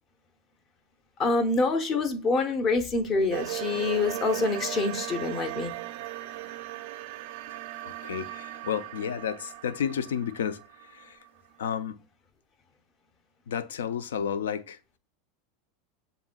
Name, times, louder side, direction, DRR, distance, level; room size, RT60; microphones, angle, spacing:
voice 1, 1.2-5.7, left 3 dB, 40° left, 0.9 m, -26 dB
sound 1, 3.3-11.3, right 16 dB, 70° right, 0.4 m, -38 dB
voice 2, 7.8-10.6 10.9-11.2 11.6-12.0 13.5-14.8, left 8 dB, 90° left, 0.3 m, -31 dB
7.0 x 2.6 x 2.2 m
hypercardioid pair, 110°, 0 cm